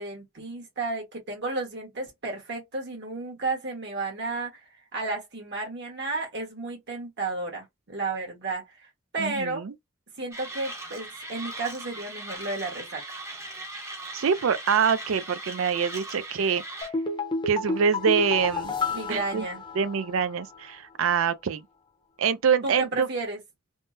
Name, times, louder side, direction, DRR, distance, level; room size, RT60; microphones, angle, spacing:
voice 1, 0.0-8.9 9.1-9.6 10.2-13.2 18.9-19.6 22.6-23.4, right 3 dB, 60° right, 1.4 m, -32 dB
voice 2, 9.2-9.7 14.1-16.6 17.5-18.7 19.1-19.4 19.8-21.6 22.2-23.1, right 6 dB, 75° right, 0.4 m, -25 dB
Mechanisms, 10.3-16.9, right 2 dB, 15° right, 0.7 m, -39 dB
sound 1, 16.8-20.2 20.5-20.6, left 3 dB, 25° left, 0.8 m, -30 dB
3.5 x 2.1 x 2.6 m
head